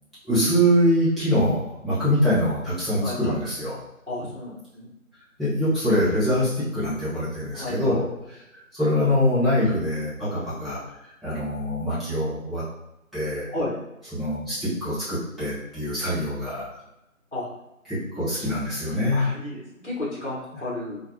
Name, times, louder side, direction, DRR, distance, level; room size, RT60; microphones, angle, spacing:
voice 1, 0.2-3.7 5.4-8.0 8.7-12.6 13.1-13.5 14.1-16.7 17.9-19.3, equal, ahead, -14 dB, 0.8 m, -24 dB
voice 2, 2.9-3.4 4.1-4.9 7.5-8.0 13.5-13.7 17.3-17.5 19.1-21.0, left 1 dB, 55° left, -5 dB, 1.1 m, -32 dB
3.7 x 2.2 x 2.7 m, 0.89 s
figure-of-eight pair, 175°, 42 cm